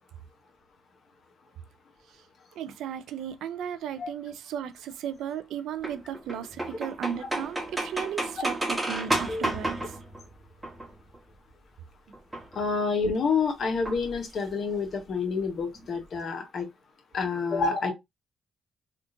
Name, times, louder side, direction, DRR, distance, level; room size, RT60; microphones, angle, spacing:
voice 1, 2.6-9.8, right 9 dB, 80° right, 0.4 m, -35 dB
sound 1, 5.8-11.2 12.1-12.6 13.8-14.5 14.8-14.9 15.1-15.2 15.5-15.8, right 1 dB, 15° right, 1.0 m, -32 dB
voice 2, 12.6-16.7 17.1-17.9, left 4 dB, 55° left, 1.0 m, -28 dB
3.6 x 2.5 x 2.6 m
cardioid pair, 90°, 0 cm